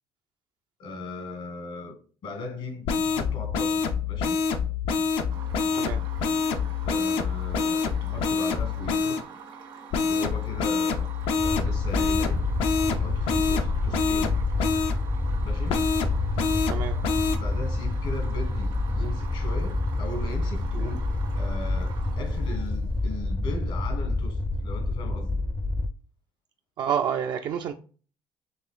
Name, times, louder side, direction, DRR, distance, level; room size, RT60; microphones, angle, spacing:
voice 1, 0.8-2.0 2.2-4.4 6.8-9.2 10.1-11.1 11.4-12.4 13.0-14.4 15.4-15.8 17.4-21.0 21.4-25.4, left 2 dB, 70° left, 1.3 m, -38 dB
sound 1, 2.8-9.2 9.9-15.0 15.7-17.4, left 5 dB, 85° left, 0.5 m, -26 dB
sound 2, 5.3-23.3, right 6 dB, 75° right, 1.5 m, -45 dB
sound 3, 11.4-25.9, left 2 dB, 15° left, 0.4 m, -28 dB
voice 2, 26.8-27.7, right 8 dB, 60° right, 0.4 m, -28 dB
5.8 x 3.1 x 2.4 m
cardioid pair, 125°, 9 cm